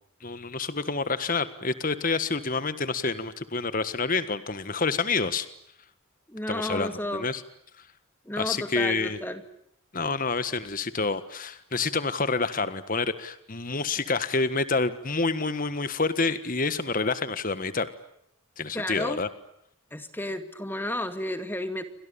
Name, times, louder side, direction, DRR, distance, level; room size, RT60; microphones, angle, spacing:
voice 1, 0.2-5.5 6.5-7.4 8.4-9.2 9.9-17.9 18.6-19.3, left 4 dB, 40° left, 12 dB, 1.5 m, -28 dB
voice 2, 6.3-7.3 8.3-9.4 18.7-19.2 19.9-21.9, left 1 dB, 10° left, 9 dB, 2.3 m, -32 dB
29.5 x 25.5 x 7.1 m, 0.74 s
head